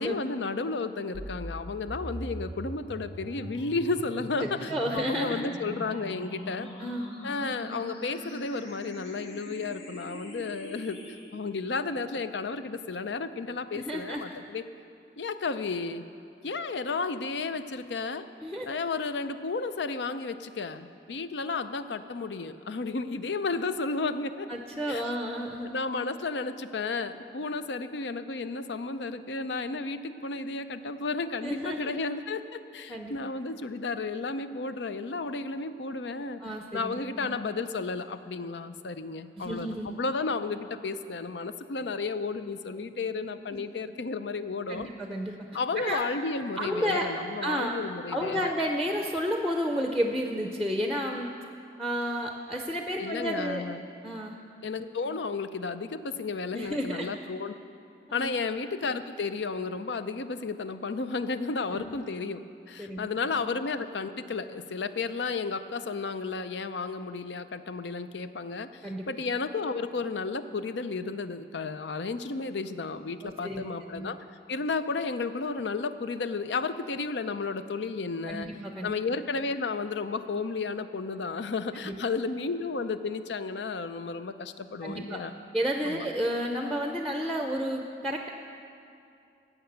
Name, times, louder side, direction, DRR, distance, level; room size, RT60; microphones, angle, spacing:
voice 1, 0.0-6.7 7.2-11.0 11.3-14.6 15.2-16.0 16.4-18.2 18.7-24.5 24.9-25.1 25.6-36.4 36.7-39.7 39.9-44.9 45.5-48.5 53.0-53.9 54.6-57.5 58.1-74.2 74.5-78.5 78.8-85.3 85.8-86.1, left 4 dB, 85° left, 11 dB, 0.6 m, -33 dB
sound 1, 1.1-11.2, equal, 35° left, 2.2 m, -42 dB
voice 2, 4.4-5.5 6.8-7.1 13.7-14.4 18.4-18.8 24.5-25.7 31.4-32.0 32.9-33.2 36.4-37.4 39.4-40.0 44.7-45.3 45.8-46.0 46.6-47.1 47.4-47.7 48.1-51.3 51.8-53.6 54.0-54.4 56.5-57.1 58.1-58.4 61.7-62.0 62.8-63.1 63.3-63.4 68.8-69.1 73.2-73.7 73.9-74.1 78.3-78.9 81.8-81.9 84.8-85.2 85.5-88.3, equal, ahead, 3 dB, 0.6 m, -31 dB
16.0 x 6.0 x 8.0 m, 2.5 s
head